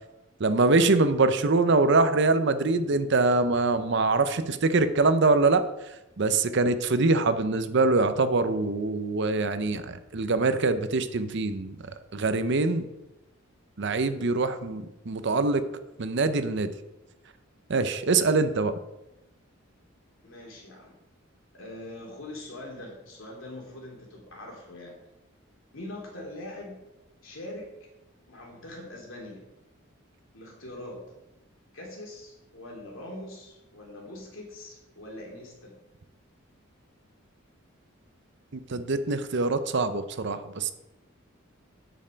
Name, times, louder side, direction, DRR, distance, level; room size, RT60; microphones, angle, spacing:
voice 1, 0.4-5.7 6.2-11.8 12.1-12.9 13.8-15.6 16.0-16.7 17.7-18.7 38.5-40.7, right 3 dB, 60° right, 11 dB, 0.7 m, -24 dB
voice 2, 20.2-21.0 21.5-25.0 25.7-26.8 27.2-27.9 28.3-29.4 30.3-31.0 31.7-35.8, left 1 dB, 70° left, -2 dB, 3.0 m, -42 dB
9.1 x 6.7 x 5.1 m, 0.96 s
head